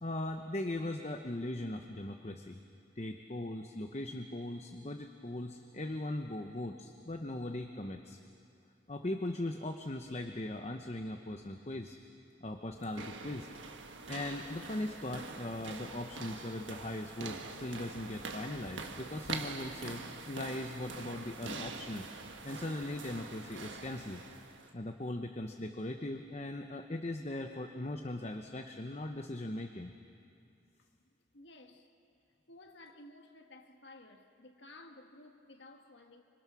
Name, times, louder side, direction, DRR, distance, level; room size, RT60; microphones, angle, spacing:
voice 1, 0.0-2.6 3.0-8.2 8.9-12.0 12.4-13.5 14.1-22.1 22.4-24.2 24.7-29.9, left 1 dB, 35° left, 0.9 m, -39 dB
sound 1, 12.8-24.7, right 4 dB, 80° right, 1.5 m, -44 dB
voice 2, 31.0-31.9 32.5-36.2, left 2 dB, 70° left, 1.6 m, -55 dB
26.5 x 25.5 x 6.2 m
head